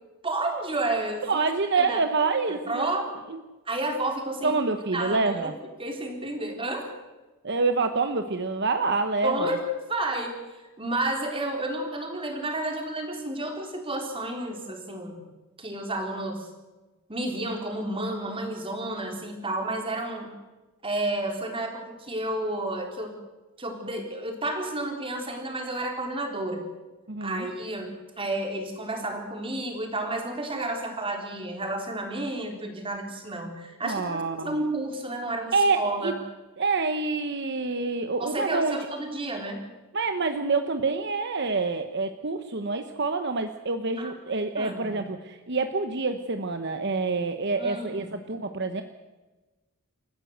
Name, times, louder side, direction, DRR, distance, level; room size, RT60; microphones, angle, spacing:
voice 1, 0.2-1.5 1.8-2.0 2.7-3.1 3.7-4.6 4.9-5.5 5.8-6.9 9.2-10.4 10.8-15.3 15.6-16.5 17.1-20.3 20.8-23.2 23.6-26.6 27.2-36.2 38.2-39.6 44.0-44.1 44.6-45.0 47.6-48.1, right 1 dB, 25° right, 3 dB, 3.9 m, -31 dB
voice 2, 1.2-2.9 3.3-3.4 4.4-5.5 7.4-9.6 27.1-27.5 33.8-34.6 35.5-36.1 36.6-38.8 39.9-48.8, right 3 dB, 55° right, 7 dB, 1.1 m, -27 dB
28.5 x 14.5 x 8.0 m, 1.2 s
head